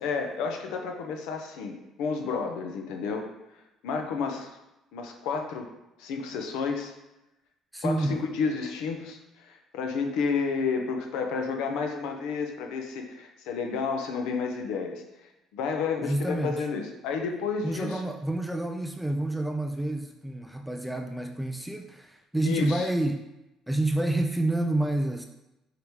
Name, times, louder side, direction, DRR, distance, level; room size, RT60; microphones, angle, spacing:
voice 1, 0.0-3.3 3.8-4.5 4.9-5.7 6.0-6.9 7.8-15.0 15.5-18.0 22.4-22.9, left 5 dB, 85° left, 4 dB, 0.9 m, -31 dB
voice 2, 7.7-8.2 16.0-16.7 17.6-23.2 23.7-25.3, right 1 dB, ahead, 4 dB, 0.3 m, -28 dB
5.1 x 4.9 x 4.7 m, 0.94 s
cardioid pair, 160°, 0 cm